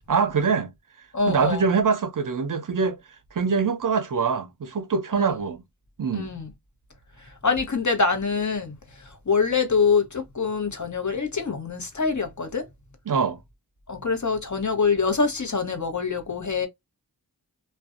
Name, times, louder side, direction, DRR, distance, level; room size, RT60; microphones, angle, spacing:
voice 1, 0.1-0.7 1.3-3.0 3.3-5.6 6.0-6.3 13.1-13.4, right 5 dB, 55° right, 0.5 m, -24 dB
voice 2, 1.1-1.6 5.2-5.3 6.1-6.5 7.4-8.7 9.0-12.7 13.9-16.7, left 5 dB, 45° left, 0.9 m, -25 dB
2.4 x 2.1 x 2.4 m
wide cardioid pair, 45°, 40 cm